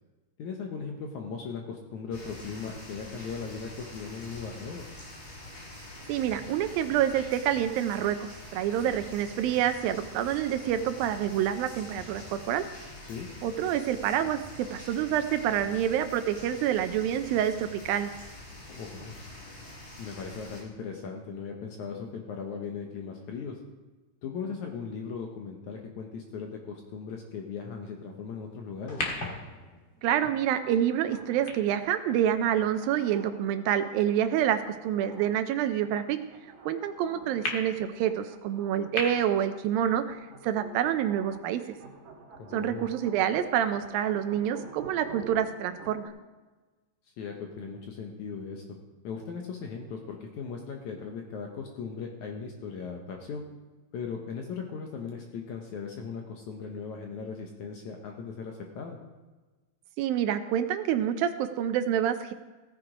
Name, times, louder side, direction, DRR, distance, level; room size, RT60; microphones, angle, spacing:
voice 1, 0.4-4.9 13.1-13.3 18.7-19.2 20.0-23.6 24.2-29.1 42.4-42.9 47.2-48.8 49.0-53.4 53.9-59.0, left 5 dB, 70° left, 2 dB, 1.9 m, -38 dB
sound 1, 2.1-20.6, left 1 dB, 85° left, 5.2 m, -45 dB
voice 2, 6.1-12.6 13.4-18.1 30.0-36.2 36.7-41.6 42.5-46.0 60.0-62.3, right 10 dB, 80° right, 9 dB, 2.3 m, -27 dB
sound 2, 28.8-33.3 34.0-34.1 37.4-37.5 39.0-39.1, left 2 dB, 40° left, 1.8 m, -38 dB
sound 3, 30.0-46.1, right 3 dB, 50° right, 2.9 m, -50 dB
16.5 x 7.8 x 5.0 m, 1.3 s
omnidirectional pair, 4.4 m